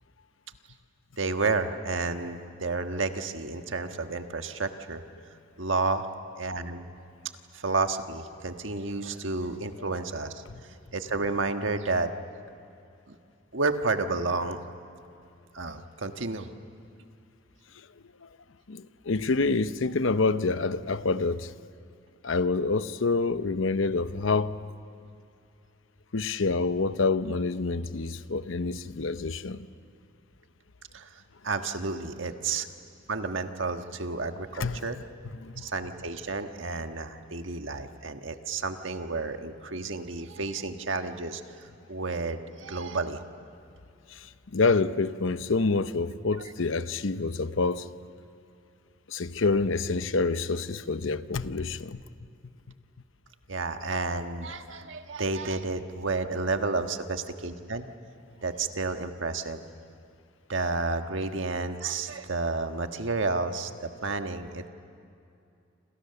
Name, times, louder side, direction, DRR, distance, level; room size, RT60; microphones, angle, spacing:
voice 1, 1.2-5.0 5.6-6.1 6.4-6.9 7.5-10.4 10.9-12.1 13.1-13.2 13.5-14.6 15.5-16.5 30.9-31.1 31.4-32.7 33.1-35.0 35.6-41.4 41.9-43.2 46.4-46.5 53.5-57.9 58.4-59.6 60.5-64.7, right 3 dB, 70° right, 1.5 m, -31 dB
voice 2, 18.7-21.5 22.2-24.6 26.1-29.7 34.5-34.8 35.4-35.6 44.1-47.9 49.1-52.0, left 3 dB, 75° left, 0.8 m, -27 dB
28.0 x 27.5 x 6.9 m
head